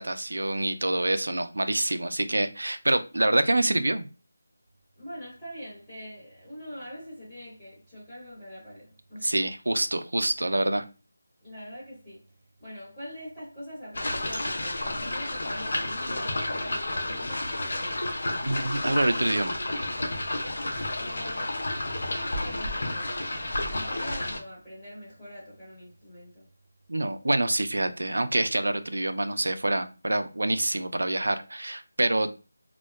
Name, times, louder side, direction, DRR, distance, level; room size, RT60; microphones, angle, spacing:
voice 1, 0.0-4.1 9.2-10.8 18.4-19.6 26.9-32.3, right 1 dB, 90° right, 0.3 m, -26 dB
voice 2, 5.0-9.3 11.4-12.2 12.6-18.2 21.0-21.6 22.1-23.3 23.7-26.5, equal, 15° left, 0.8 m, -44 dB
sound 1, 13.9-24.4, left 1 dB, 55° left, 0.5 m, -31 dB
2.6 x 2.1 x 2.2 m
figure-of-eight pair, 175°, 0 cm